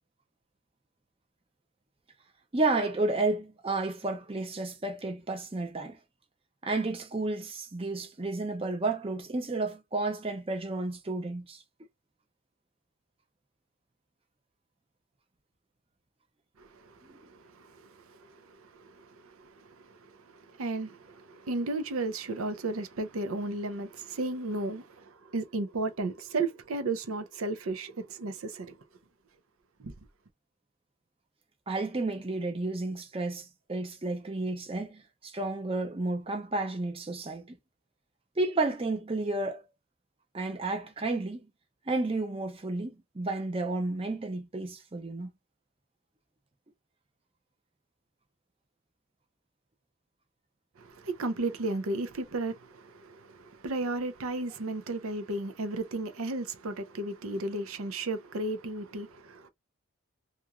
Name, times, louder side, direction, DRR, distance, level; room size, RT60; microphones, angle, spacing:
voice 1, 2.5-6.0 6.6-11.6 17.1-17.2 31.7-37.6 38.4-39.6 40.3-41.5 41.9-45.3, right 2 dB, 25° right, 0.6 m, -31 dB
voice 2, 16.6-28.8 29.8-29.9 50.8-59.5, right 2 dB, 80° right, 0.6 m, -34 dB
2.9 x 2.5 x 2.3 m
head